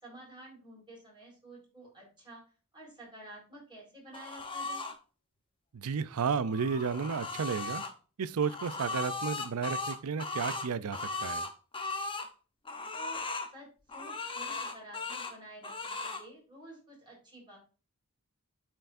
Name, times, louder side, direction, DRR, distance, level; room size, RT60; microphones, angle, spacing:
voice 1, 0.0-2.4 2.7-4.9 12.9-13.2 13.5-17.6, right 1 dB, 20° right, 4.5 m, -51 dB
sound 1, 4.1-4.9 6.3-7.9 8.4-12.3 12.7-13.5 13.9-15.3 15.6-16.2, left 3 dB, 25° left, 0.9 m, -37 dB
voice 2, 5.7-7.8 8.2-11.4, right 6 dB, 70° right, 0.5 m, -32 dB
12.5 x 4.6 x 2.6 m
head